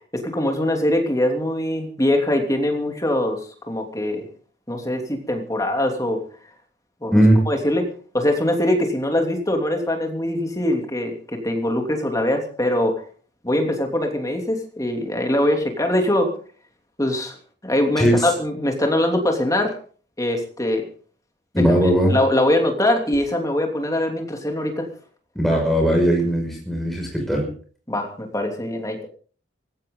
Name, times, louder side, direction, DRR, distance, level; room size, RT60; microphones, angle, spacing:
voice 1, 0.1-3.4 3.7-4.3 4.7-6.2 7.0-7.2 7.5-7.9 8.1-13.0 13.4-16.3 17.0-17.3 17.6-19.7 20.2-20.8 21.5-21.6 22.1-24.9 27.9-29.1, left 1 dB, 15° left, 3 dB, 3.0 m, -22 dB
voice 2, 7.1-7.4 18.0-18.3 21.6-22.2 25.3-27.5, equal, ahead, 0 dB, 5.9 m, -18 dB
19.0 x 16.5 x 3.9 m, 0.43 s
head